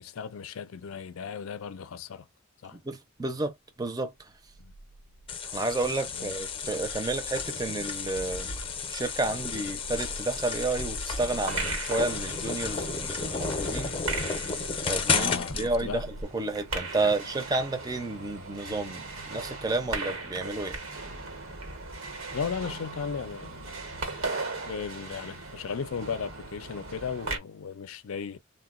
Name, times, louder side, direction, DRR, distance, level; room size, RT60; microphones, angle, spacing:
voice 1, 0.0-2.3 2.6-2.8 4.6-4.7 6.1-6.3 15.1-16.1 17.0-17.1 22.3-23.7 24.7-28.4, left 6 dB, 85° left, 0.5 m, -36 dB
voice 2, 2.8-3.5 3.8-4.1 5.5-8.5 8.9-13.9 14.8-16.1 16.3-20.8, right 2 dB, 20° right, 0.5 m, -31 dB
sound 1, 4.3-16.2, right 1 dB, 65° right, 0.6 m, -45 dB
sound 2, 5.3-15.7, left 5 dB, 25° left, 0.6 m, -32 dB
sound 3, 11.2-27.4, right 3 dB, 90° right, 1.0 m, -38 dB
3.7 x 2.2 x 2.4 m
head